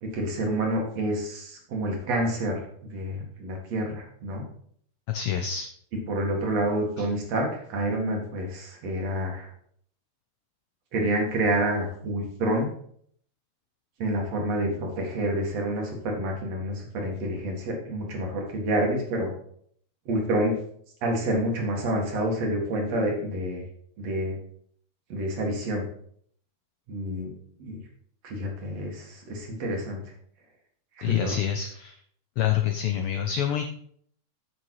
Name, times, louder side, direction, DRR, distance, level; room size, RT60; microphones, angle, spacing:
voice 1, 0.0-4.5 6.1-9.5 10.9-12.7 14.0-19.3 20.1-20.6 21.0-23.6 24.0-24.3 25.1-25.8 26.9-27.3 27.6-27.8 28.2-30.0 31.0-31.4, right 1 dB, 65° right, 0 dB, 3.0 m, -28 dB
voice 2, 5.1-5.7 31.0-32.0 32.4-33.7, left 9 dB, 85° left, 6 dB, 1.2 m, -27 dB
8.3 x 6.1 x 4.7 m, 0.63 s
omnidirectional pair, 3.3 m